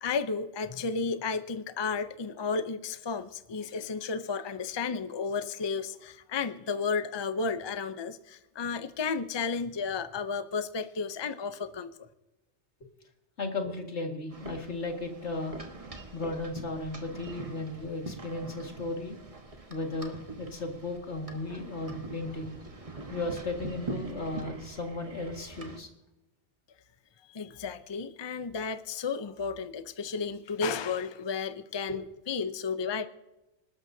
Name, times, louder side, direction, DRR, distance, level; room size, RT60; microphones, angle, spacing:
voice 1, 0.0-12.1 27.3-33.1, left 5 dB, 30° left, 11 dB, 0.5 m, -33 dB
voice 2, 13.4-15.6 16.1-19.2 19.7-22.5 23.1-25.9, left 2 dB, 80° left, 2 dB, 2.3 m, -35 dB
sound 1, 14.3-25.8, right 3 dB, 30° right, 1.3 m, -43 dB
Thunder, 21.3-25.8, right 1 dB, 75° right, 6.6 m, -54 dB
26.5 x 12.5 x 2.7 m, 0.99 s
omnidirectional pair, 1.2 m